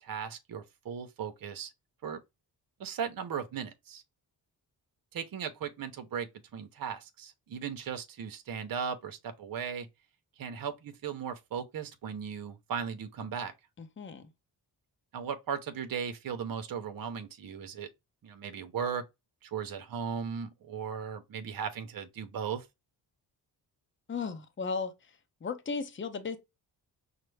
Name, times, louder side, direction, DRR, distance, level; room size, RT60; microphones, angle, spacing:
voice 1, 0.0-1.7 2.0-2.2 2.8-4.0 5.1-9.9 10.4-13.5 15.1-17.9 18.2-19.0 19.4-22.7, right 7 dB, 55° right, 0.7 m, -37 dB
voice 2, 13.8-14.3 24.1-26.4, left 5 dB, 30° left, 0.7 m, -36 dB
5.6 x 2.0 x 3.2 m
cardioid pair, 80°, 43 cm